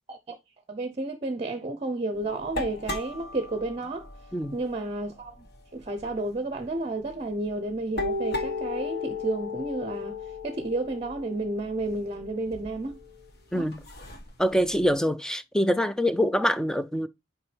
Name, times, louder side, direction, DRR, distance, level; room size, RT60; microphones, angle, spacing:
voice 1, 0.7-4.1 4.5-5.5 5.7-10.2 10.4-13.0 13.5-13.7, right 2 dB, 30° right, 0.6 m, -31 dB
sound 1, 2.1-6.1 6.6-6.8 7.1-14.9, left 3 dB, 55° left, 1.4 m, -36 dB
voice 2, 13.5-13.8 14.4-17.1, equal, 5° left, 0.4 m, -25 dB
7.1 x 4.8 x 3.2 m
head